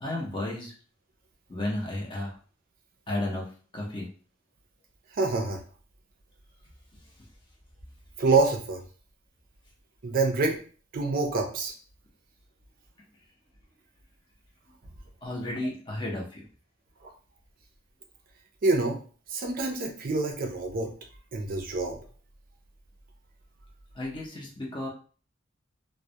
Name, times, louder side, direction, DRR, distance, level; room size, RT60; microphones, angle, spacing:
voice 1, 0.0-0.7 1.5-2.3 3.1-3.5 3.7-4.1 15.2-16.4 24.0-24.9, left 1 dB, 25° left, -2 dB, 0.6 m, -33 dB
voice 2, 5.1-5.6 8.2-8.8 10.0-10.6 10.9-11.7 17.0-17.1 18.6-19.0 19.3-20.9 21.3-22.0, right 3 dB, 45° right, 2 dB, 0.4 m, -26 dB
2.2 x 2.0 x 2.7 m, 0.40 s
head